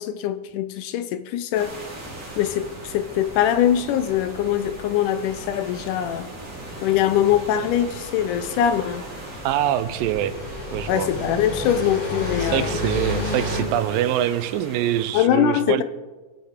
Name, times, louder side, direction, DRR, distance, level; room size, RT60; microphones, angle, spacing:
voice 1, 0.0-1.8 2.4-6.3 6.8-9.1 10.9-12.8 15.1-15.8, left 10 dB, 80° left, 2.0 m, -22 dB
sound 1, 1.5-15.1, right 2 dB, 25° right, 3.1 m, -40 dB
sound 2, 1.9-13.6, left 2 dB, 30° left, 4.5 m, -34 dB
voice 2, 9.4-10.3 10.7-11.1 12.4-15.8, right 12 dB, 90° right, 2.4 m, -24 dB
23.5 x 8.4 x 4.3 m
omnidirectional pair, 3.9 m